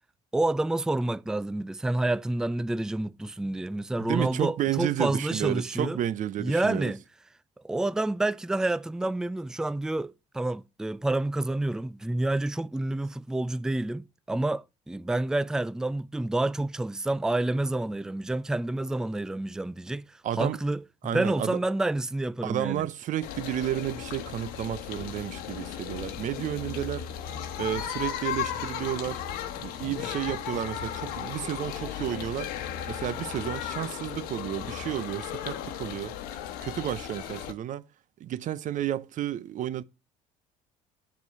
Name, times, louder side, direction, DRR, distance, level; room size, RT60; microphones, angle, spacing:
voice 1, 0.3-6.0 6.4-7.0 7.6-22.9, right 2 dB, 5° right, 0.4 m, -29 dB
voice 2, 4.0-6.9 20.2-20.6 21.0-21.6 22.4-27.1 27.6-29.2 29.6-32.5 32.9-36.2 36.6-37.8 38.2-39.8, right 12 dB, 55° right, 0.8 m, -31 dB
sound 1, 23.2-37.5, left 10 dB, 75° left, 1.3 m, -36 dB
8.3 x 6.5 x 4.7 m
supercardioid pair, 85°, 16 cm